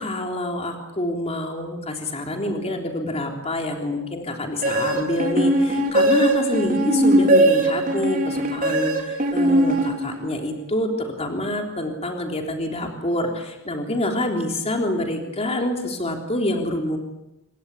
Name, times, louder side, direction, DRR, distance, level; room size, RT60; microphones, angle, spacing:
voice 1, 0.0-17.0, left 1 dB, 30° left, 2 dB, 3.5 m, -26 dB
sound 1, 4.6-10.4, right 1 dB, 40° right, 4.0 m, -20 dB
27.5 x 23.0 x 8.4 m, 0.91 s
head